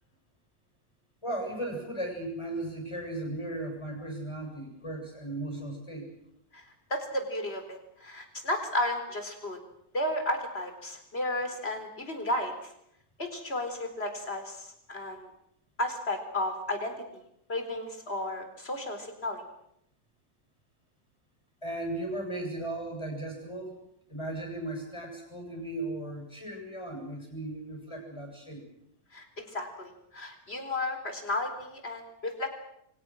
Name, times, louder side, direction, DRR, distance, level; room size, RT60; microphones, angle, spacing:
voice 1, 1.2-6.1 21.6-23.8 24.1-28.6, right 1 dB, 15° left, 1 dB, 7.9 m, -36 dB
voice 2, 6.5-9.6 9.9-12.7 13.2-15.3 15.8-17.2 17.5-19.4 29.1-32.5, left 1 dB, 30° left, 6 dB, 4.4 m, -33 dB
28.5 x 24.5 x 6.3 m, 0.77 s
omnidirectional pair, 2.0 m